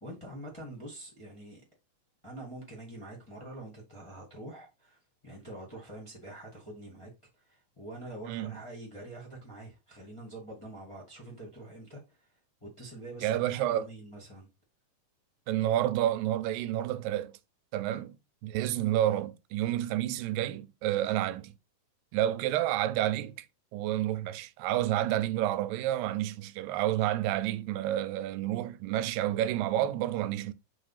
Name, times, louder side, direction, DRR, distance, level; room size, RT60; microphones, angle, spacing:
voice 1, 0.0-1.6 2.2-7.1 7.4-12.3 12.6-14.5 17.9-18.0, right 1 dB, 15° left, 1.0 m, -45 dB
voice 2, 13.2-13.9 15.5-17.3 17.7-18.1 18.4-21.5 22.1-23.3 23.7-30.5, right 13 dB, 90° right, 2.3 m, -29 dB
5.4 x 3.3 x 5.5 m
omnidirectional pair, 3.9 m